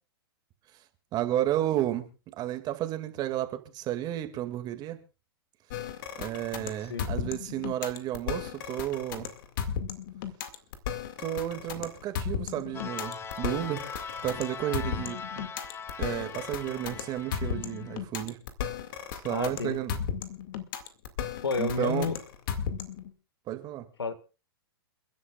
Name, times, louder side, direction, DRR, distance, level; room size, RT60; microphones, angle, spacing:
voice 1, 1.1-2.1 2.4-5.0 6.2-9.3 11.2-13.8 14.2-15.5 16.0-18.4 19.1-20.0 21.6-22.1 23.5-23.9, right 13 dB, 35° right, 2.2 m, -32 dB
sound 1, 5.7-23.1, left 8 dB, 55° left, 2.2 m, -35 dB
sound 2, 12.7-18.0, left 5 dB, 20° left, 1.0 m, -41 dB
voice 2, 19.3-19.8 21.4-22.2 24.0-24.2, left 4 dB, 85° left, 1.8 m, -30 dB
30.0 x 11.0 x 2.4 m
hypercardioid pair, 115°, 13 cm